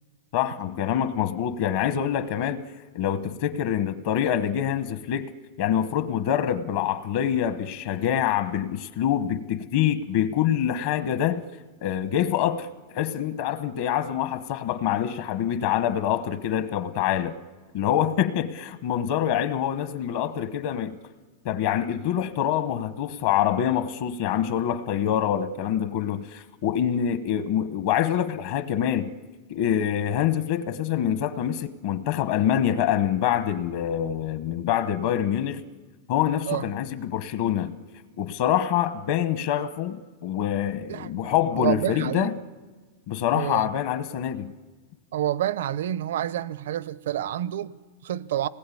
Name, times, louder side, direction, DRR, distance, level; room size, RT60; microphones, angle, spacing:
voice 1, 0.3-2.7 2.9-5.3 5.6-11.4 11.8-12.7 12.9-17.4 17.7-21.0 21.4-29.2 29.5-35.6 36.1-37.8 38.2-42.3 43.1-44.5, left 10 dB, 50° left, 0.9 m, -25 dB
voice 2, 40.9-42.3 43.3-43.7 45.1-48.5, right 12 dB, 80° right, 0.7 m, -29 dB
27.0 x 20.0 x 8.4 m
supercardioid pair, 170°, 0 cm